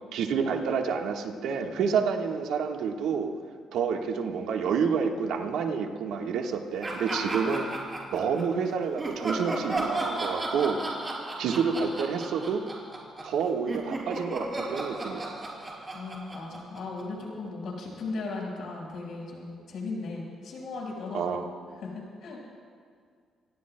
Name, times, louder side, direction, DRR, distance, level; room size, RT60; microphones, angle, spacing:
voice 1, 0.1-3.3 3.7-7.7 8.1-10.8 11.4-12.6 13.2-15.4 21.1-21.4, right 6 dB, 85° right, 3 dB, 1.3 m, -28 dB
Laughter, 6.8-8.6 9.0-13.4 13.7-17.3, right 2 dB, 25° right, 4.2 m, -34 dB
voice 2, 15.9-21.5 21.8-22.4, left 3 dB, 70° left, -1 dB, 4.9 m, -37 dB
28.5 x 18.0 x 2.2 m, 2.1 s
cardioid pair, 90°, 0 cm